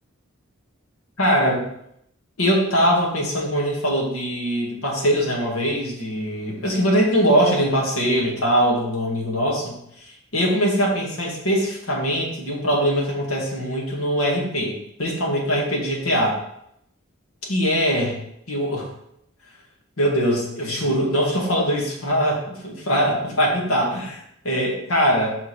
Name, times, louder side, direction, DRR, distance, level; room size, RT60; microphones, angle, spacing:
voice 1, 1.2-1.6 2.4-14.7 15.0-16.4 17.5-18.2 18.5-18.9 20.0-24.2 24.4-25.4, equal, 85° left, -2 dB, 2.0 m, -22 dB
5.6 x 5.0 x 4.2 m, 0.75 s
head